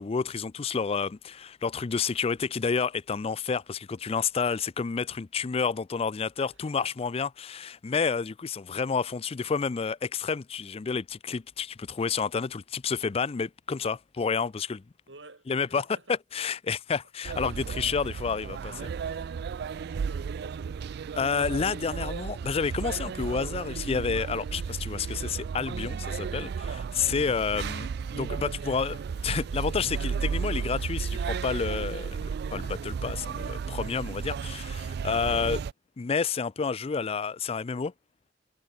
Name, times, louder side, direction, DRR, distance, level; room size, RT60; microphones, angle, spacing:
voice 1, 0.0-14.8 15.5-15.8 16.3-18.9 21.2-27.9 28.1-29.0 29.2-35.6 36.0-37.9, left 5 dB, 35° left, 0.4 m, -30 dB
voice 2, 6.4-7.1 7.9-8.1 15.1-16.2 19.5-20.8, right 2 dB, 85° right, 4.7 m, -52 dB
sound 1, 17.2-35.7, right 6 dB, 60° right, 0.3 m, -34 dB
Drum kit, 26.4-33.4, left 2 dB, 65° left, 3.0 m, -58 dB
head